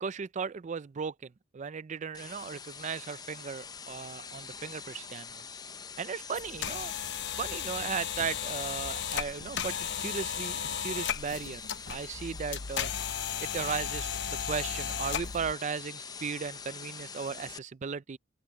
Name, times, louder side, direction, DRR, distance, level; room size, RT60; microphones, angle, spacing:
voice 1, 0.0-5.4 6.0-6.9 7.4-11.6 11.9-12.9 13.4-18.2, right 6 dB, 35° right, 0.4 m, -36 dB
sound 1, 2.1-17.6, left 6 dB, 20° left, 0.5 m, -45 dB
sound 2, 6.3-15.5, left 8 dB, 60° left, 0.8 m, -35 dB
open air
head